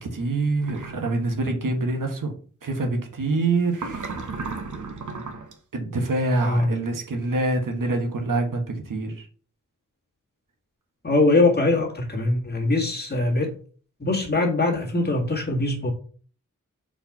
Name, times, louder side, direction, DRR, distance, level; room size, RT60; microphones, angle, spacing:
voice 1, 0.0-2.3 2.6-4.1 5.7-9.3, right 2 dB, 85° right, 1.5 m, -25 dB
sound 1, 0.6-1.1 3.7-5.5, right 4 dB, 70° right, 1.1 m, -34 dB
voice 2, 11.0-13.6 14.0-15.9, left 2 dB, 30° left, 2.0 m, -22 dB
4.9 x 4.4 x 5.9 m
wide cardioid pair, 120°, 31 cm